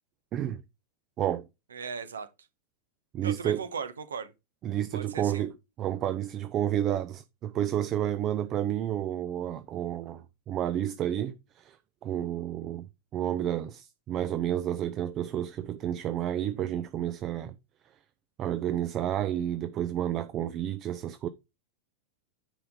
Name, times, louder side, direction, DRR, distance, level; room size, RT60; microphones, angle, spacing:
voice 1, 1.2-1.5 3.1-3.6 4.6-11.8 12.0-12.9 13.1-17.5 18.4-21.3, right 11 dB, 35° right, 0.6 m, -30 dB
voice 2, 1.7-2.3 3.2-4.3 4.9-5.4, right 6 dB, 70° right, 1.3 m, -37 dB
10.0 x 5.6 x 3.8 m
figure-of-eight pair, 90°, 0 cm